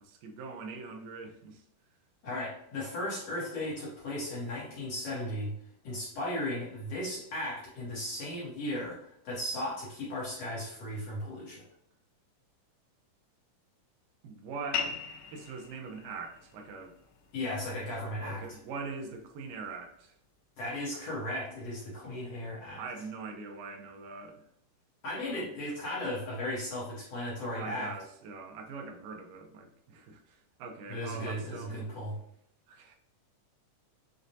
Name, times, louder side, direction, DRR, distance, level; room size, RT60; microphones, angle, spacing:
voice 1, 0.0-1.6 14.2-14.9 15.3-17.0 18.2-20.1 22.8-24.4 25.2-25.5 27.6-31.9 32.7-33.0, right 4 dB, 85° right, 4 dB, 2.3 m, -42 dB
voice 2, 2.2-5.5 5.8-11.6 17.3-18.4 20.6-22.8 25.0-27.9 30.9-32.2, left 1 dB, 65° left, -6 dB, 1.6 m, -36 dB
sound 1, 14.7-19.8, left 6 dB, 80° left, 2.2 m, -41 dB
6.1 x 2.1 x 2.7 m, 0.72 s
omnidirectional pair, 3.8 m